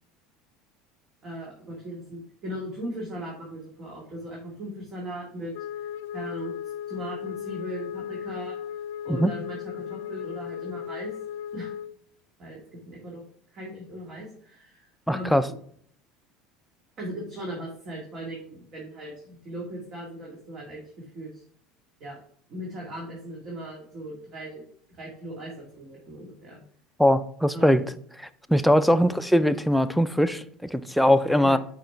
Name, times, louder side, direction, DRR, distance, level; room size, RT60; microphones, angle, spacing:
voice 1, 1.2-6.5 6.9-8.6 9.0-9.6 9.9-11.1 11.5-11.7 12.4-13.2 13.5-15.6 17.0-21.4 22.0-22.2 22.5-24.6 25.0-26.6 27.5-27.8 28.9-29.1 31.4-31.6, right 1 dB, 50° right, 1.9 m, -38 dB
Wind instrument woodwind instrument, 5.5-12.0, left 9 dB, 80° left, 0.3 m, -36 dB
voice 2, 15.1-15.5 27.0-27.8 28.2-31.6, equal, ahead, 0.4 m, -21 dB
6.4 x 5.1 x 3.4 m
supercardioid pair, 100°, 0 cm